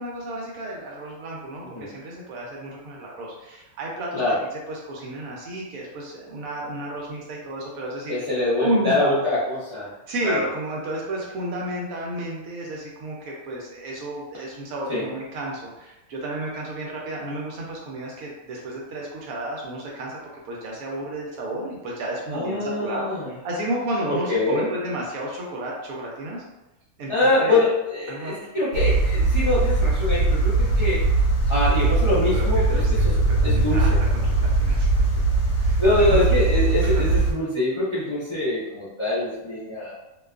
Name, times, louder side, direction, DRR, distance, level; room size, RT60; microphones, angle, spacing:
voice 1, 0.0-4.2 4.7-8.2 8.6-9.2 10.1-20.2 20.5-26.4 27.0-27.6 28.1-28.3 32.3-32.9 33.3-34.9 35.6-36.2 36.8-37.1, right 1 dB, 80° right, -3 dB, 1.0 m, -32 dB
voice 2, 8.1-9.9 10.2-10.5 14.9-15.0 22.3-23.3 24.1-24.7 27.1-31.0 31.5-34.0 35.8-39.9, left 2 dB, 40° left, -10 dB, 0.4 m, -24 dB
high voltage powerlines, 28.7-37.3, right 2 dB, 85° left, 1.1 m, -20 dB
2.6 x 2.3 x 2.3 m, 0.99 s
omnidirectional pair, 1.5 m